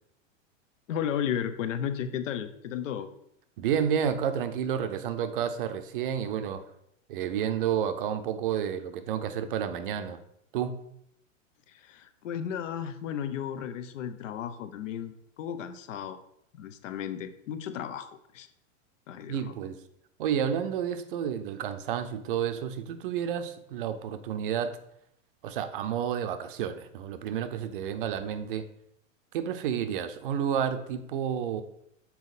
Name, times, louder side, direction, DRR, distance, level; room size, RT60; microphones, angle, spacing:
voice 1, 0.9-3.1 11.7-16.2 16.6-18.5 19.1-19.5, left 9 dB, 75° left, 11 dB, 0.8 m, -34 dB
voice 2, 3.6-6.6 7.1-10.2 10.5-10.7 19.3-19.8 20.2-24.8 25.4-28.7 29.3-31.6, right 8 dB, 45° right, 9 dB, 0.6 m, -30 dB
7.2 x 4.2 x 4.1 m, 0.75 s
supercardioid pair, 170°, 39 cm